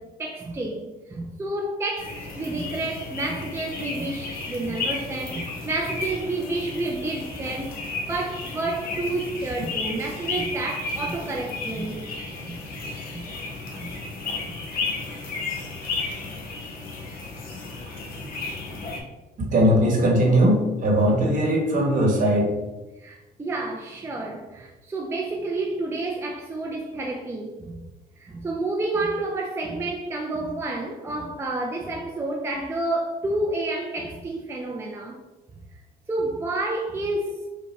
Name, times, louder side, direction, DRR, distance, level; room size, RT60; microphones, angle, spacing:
voice 1, 0.0-12.0 12.4-12.6 13.1-13.2 13.8-13.9 14.4-14.5 23.0-27.8 28.2-35.2 36.1-37.5, right 2 dB, 15° right, 0.4 m, -30 dB
sound 1, 2.0-19.0, left 3 dB, 60° left, 1.0 m, -33 dB
voice 2, 19.5-22.5, equal, 50° right, 1.2 m, -19 dB
5.4 x 2.2 x 3.1 m
cardioid pair, 110°, 17 cm